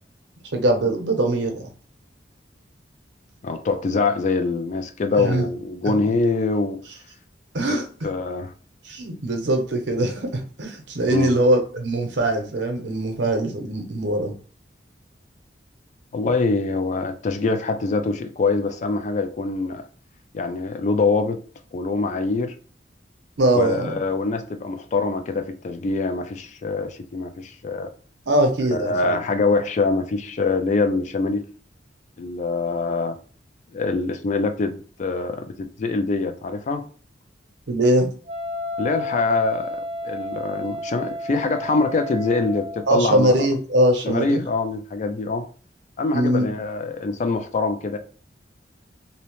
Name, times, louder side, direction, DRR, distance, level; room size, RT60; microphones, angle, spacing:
voice 1, 0.5-1.6 5.2-5.5 7.5-8.1 8.8-14.4 23.4-24.0 28.3-29.2 37.7-38.1 42.9-44.4 46.1-46.5, right 1 dB, 80° right, 0.7 m, -22 dB
voice 2, 3.4-6.8 7.7-7.8 8.0-8.5 11.1-11.3 16.1-19.8 20.3-21.4 21.7-22.5 23.5-27.9 28.7-31.4 32.2-33.2 33.7-36.8 38.8-39.8 40.0-43.3 44.0-45.4 46.0-48.0, left 3 dB, 40° left, 0.3 m, -24 dB
Wind instrument woodwind instrument, 38.3-43.0, left 1 dB, 35° right, 0.4 m, -32 dB
2.7 x 2.0 x 2.9 m
head